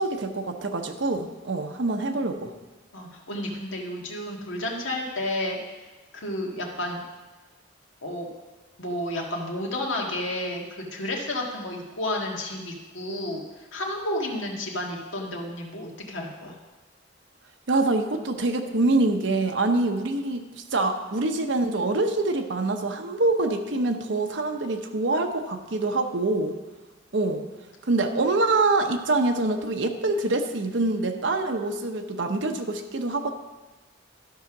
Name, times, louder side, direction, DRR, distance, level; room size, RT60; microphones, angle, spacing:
voice 1, 0.0-2.5 17.7-26.5 27.1-27.5 27.8-33.3, right 2 dB, 70° right, 5 dB, 0.8 m, -25 dB
voice 2, 2.9-5.6 6.1-7.0 8.0-8.3 8.8-13.4 13.7-16.5, left 1 dB, 80° left, -1 dB, 1.8 m, -31 dB
12.5 x 5.7 x 5.9 m, 1.2 s
head